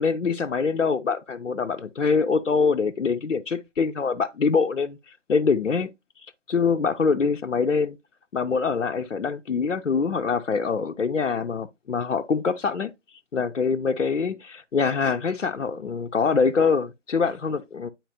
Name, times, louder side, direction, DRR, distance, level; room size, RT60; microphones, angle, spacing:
voice 1, 0.0-5.0 5.3-5.9 6.5-8.0 8.3-12.9 13.3-17.9, left 5 dB, 85° left, 0.6 m, -24 dB
9.1 x 4.3 x 2.6 m
figure-of-eight pair, 160°, 36 cm